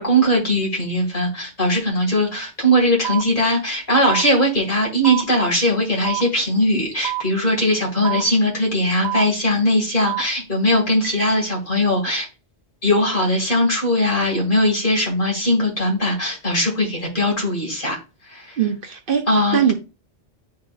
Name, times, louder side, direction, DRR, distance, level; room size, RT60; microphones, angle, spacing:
voice 1, 0.0-12.3 12.8-18.0 18.3-18.6 19.3-19.6, equal, 50° left, 2.2 m, -20 dB
sound 1, 3.0-3.2 4.0-4.2 5.0-5.2 6.0-6.2 7.0-7.2 8.0-8.2 9.0-9.2 10.0-10.2 11.0-11.2, right 14 dB, 40° right, 1.0 m, -26 dB
voice 2, 18.6-19.7, right 8 dB, 60° right, 0.8 m, -21 dB
10.5 x 3.8 x 2.4 m
omnidirectional pair, 1.1 m